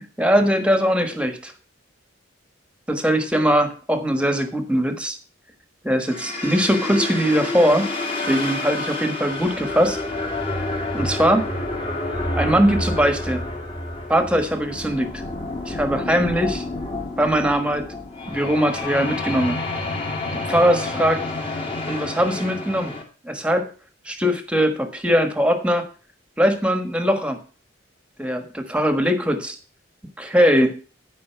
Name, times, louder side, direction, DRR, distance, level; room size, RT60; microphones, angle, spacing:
voice 1, 0.0-1.5 2.9-5.2 5.8-7.9 8.2-10.0 10.9-11.4 12.3-13.4 14.1-15.2 15.7-16.6 17.2-17.9 18.3-19.6 20.3-21.2 21.9-22.9 23.2-23.7 24.0-25.9 26.4-27.4 28.2-29.6 30.2-30.8, equal, 5° right, 7 dB, 1.4 m, -21 dB
sound 1, 6.1-23.0, left 2 dB, 25° left, 2.2 m, -29 dB
12.5 x 5.4 x 5.8 m, 0.37 s
head